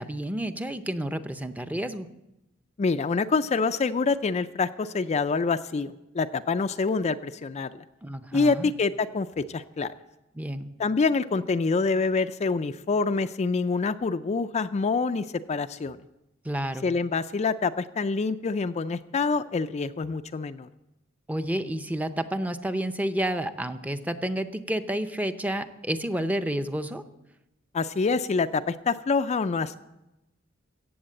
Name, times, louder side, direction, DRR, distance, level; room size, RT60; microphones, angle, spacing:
voice 1, 0.0-2.1 8.0-8.7 10.4-10.7 16.4-16.9 21.3-27.0, right 1 dB, 10° right, 9 dB, 0.6 m, -30 dB
voice 2, 2.8-7.8 8.3-9.9 10.8-16.0 16.8-20.7 27.7-29.8, left 4 dB, 35° left, 9 dB, 0.4 m, -26 dB
16.0 x 7.9 x 7.6 m, 0.95 s
head